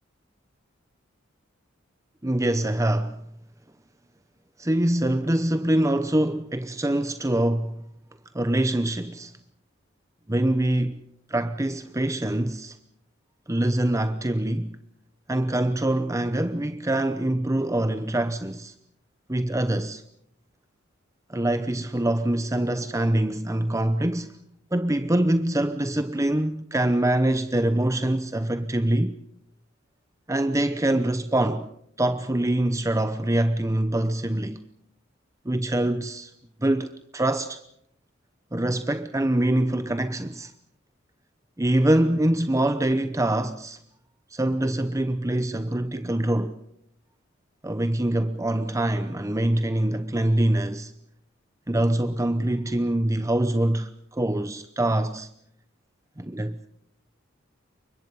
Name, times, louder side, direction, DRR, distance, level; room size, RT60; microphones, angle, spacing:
voice 1, 2.2-3.2 4.6-7.8 8.3-9.3 10.3-11.0 11.3-12.8 13.5-14.8 15.3-18.7 19.3-20.0 21.3-24.4 24.7-29.1 30.3-31.7 32.0-34.6 35.4-36.3 36.6-37.6 38.5-40.5 41.6-43.8 44.3-46.6 47.6-50.9 51.7-55.3 56.2-56.6, right 1 dB, 15° right, 0.8 m, -24 dB
29.0 x 24.5 x 5.5 m
head